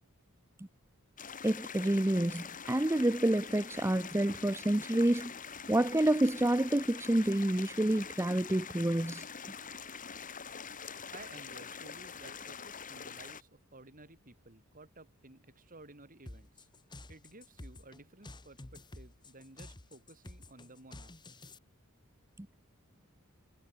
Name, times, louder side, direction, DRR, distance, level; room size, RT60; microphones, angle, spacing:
sound 1, 1.2-13.4, left 6 dB, 35° left, 2.6 m, -45 dB
voice 1, 1.4-5.3 5.7-9.2 22.4-22.5, right 1 dB, 10° right, 0.7 m, -28 dB
voice 2, 11.1-16.7 17.1-21.4, right 2 dB, 40° right, 3.8 m, -55 dB
sound 2, 16.3-21.6, left 2 dB, 20° left, 1.3 m, -50 dB
head